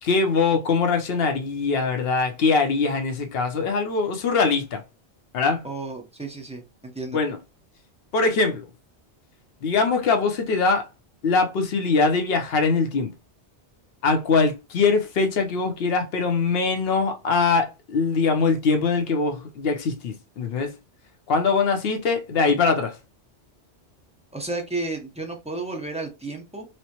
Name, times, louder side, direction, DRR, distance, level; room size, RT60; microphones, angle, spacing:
voice 1, 0.0-4.8 5.3-5.7 7.1-7.4 8.1-8.7 9.6-10.9 11.2-13.1 14.0-20.8 21.3-23.0, left 4 dB, 65° left, 0.9 m, -22 dB
voice 2, 5.6-7.2 24.3-26.7, right 2 dB, 5° right, 0.6 m, -32 dB
4.3 x 2.1 x 2.8 m
omnidirectional pair, 1.2 m